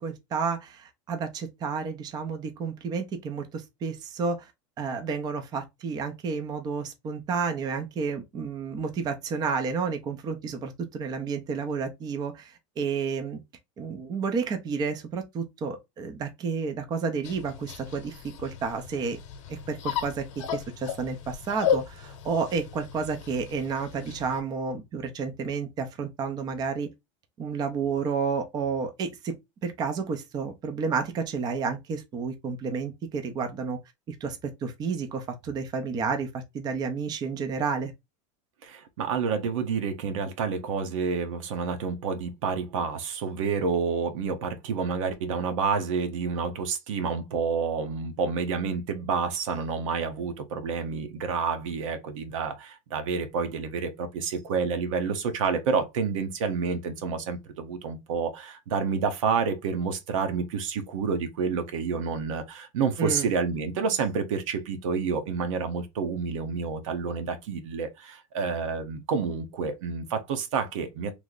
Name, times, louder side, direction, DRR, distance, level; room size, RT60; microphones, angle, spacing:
voice 1, 0.0-4.5 4.8-13.4 13.8-19.2 19.5-26.9 27.4-29.4 29.6-33.8 34.1-37.9 63.0-63.3, right 5 dB, 25° right, 0.5 m, -31 dB
sound 1, 17.2-24.4, left 8 dB, 75° left, 0.8 m, -34 dB
voice 2, 38.6-71.1, right 5 dB, 85° right, 0.9 m, -29 dB
3.1 x 2.0 x 3.7 m
supercardioid pair, 150°, 16 cm